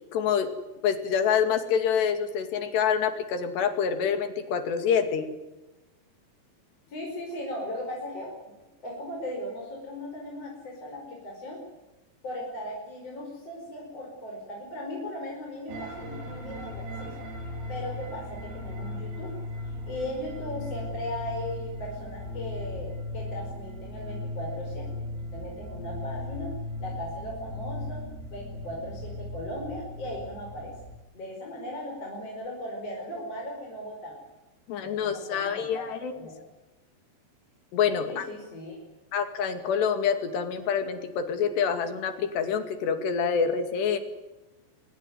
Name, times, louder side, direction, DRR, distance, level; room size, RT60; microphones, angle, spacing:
voice 1, 0.1-0.5 0.8-5.3 34.7-36.1 37.7-38.3 39.1-44.0, left 7 dB, 85° left, 8 dB, 4.5 m, -26 dB
voice 2, 6.9-8.5 8.8-11.6 12.2-17.2 17.7-19.3 19.7-25.0 25.3-26.5 26.8-30.7 31.1-34.2 34.8-36.4 38.0-38.8, left 1 dB, 35° left, -1 dB, 5.9 m, -38 dB
sound 1, 15.7-31.0, left 1 dB, 75° right, 5.9 m, -37 dB
24.5 x 21.5 x 9.4 m, 1.1 s
omnidirectional pair, 4.7 m